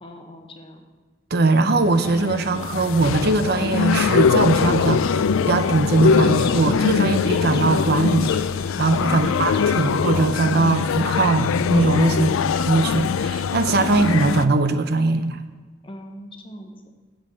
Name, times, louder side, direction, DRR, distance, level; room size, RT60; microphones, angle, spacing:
voice 1, 0.0-0.8 15.8-16.9, left 1 dB, 25° left, 4 dB, 1.0 m, -39 dB
voice 2, 1.3-5.1 5.5-12.3 12.7-15.4, right 3 dB, 55° right, 9 dB, 0.6 m, -20 dB
sound 1, 1.7-14.5, left 6 dB, 90° left, 0.4 m, -22 dB
Chirp tweet, 6.1-11.3, left 5 dB, 55° left, 0.8 m, -42 dB
7.5 x 7.2 x 7.6 m, 1.3 s
head